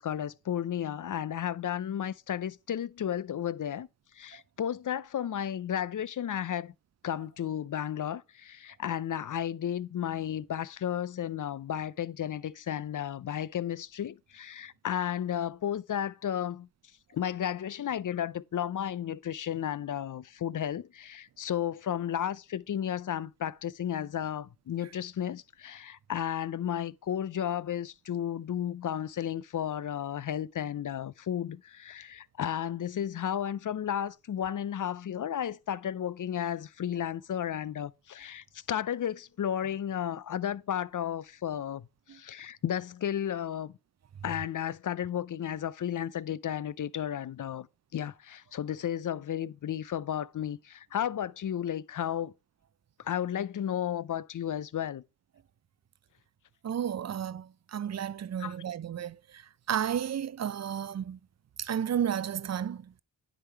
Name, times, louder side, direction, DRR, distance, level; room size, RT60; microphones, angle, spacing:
voice 1, 0.0-3.9 4.2-6.7 7.0-16.7 17.1-43.7 44.2-47.7 47.9-52.3 53.0-55.0 58.4-58.5, left 10 dB, 45° left, 0.5 m, -33 dB
voice 2, 56.6-61.2 61.6-62.9, right 9 dB, 35° right, 0.5 m, -33 dB
10.0 x 3.7 x 4.5 m
cardioid pair, 40°, 46 cm